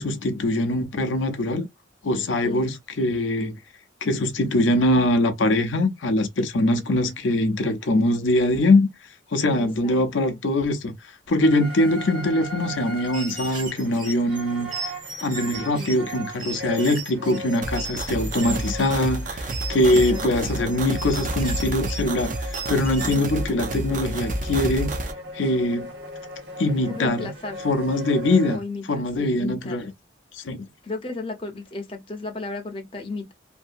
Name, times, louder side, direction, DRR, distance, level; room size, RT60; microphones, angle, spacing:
voice 1, 0.0-1.7 2.0-3.5 4.0-8.9 9.3-10.9 11.3-14.7 15.2-24.9 25.3-25.9 26.6-27.3 27.6-28.6 28.9-29.9 30.3-30.7, left 1 dB, 85° left, 0.6 m, -22 dB
voice 2, 9.5-10.0 10.3-10.4 15.7-16.0 19.9-20.6 23.2-23.3 26.9-27.6 28.5-29.8 30.8-33.3, left 3 dB, 30° left, 0.7 m, -34 dB
sound 1, 11.4-28.6, equal, 60° right, 1.4 m, -38 dB
sound 2, 13.1-23.3, right 3 dB, 25° right, 1.3 m, -37 dB
sound 3, 17.6-25.1, right 2 dB, 45° right, 0.5 m, -30 dB
2.8 x 2.6 x 2.5 m
head